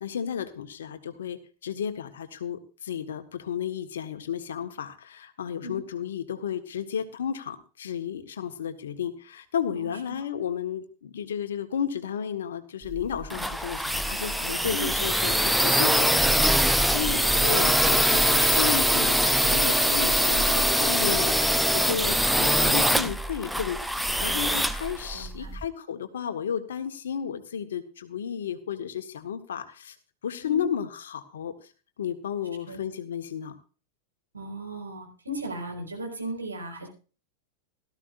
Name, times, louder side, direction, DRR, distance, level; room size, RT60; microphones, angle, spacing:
voice 1, 0.0-29.9 30.2-31.5 32.0-33.6, left 8 dB, 65° left, 9 dB, 1.5 m, -33 dB
sound 1, 12.9-25.6, equal, ahead, 0.6 m, -23 dB
voice 2, 14.7-15.0 17.0-17.5 25.1-25.6 30.4-30.7 32.7-32.8 34.3-36.9, right 1 dB, 75° right, 1 dB, 5.2 m, -37 dB
17.5 x 13.0 x 2.6 m, 0.36 s
figure-of-eight pair, 90°, 0 cm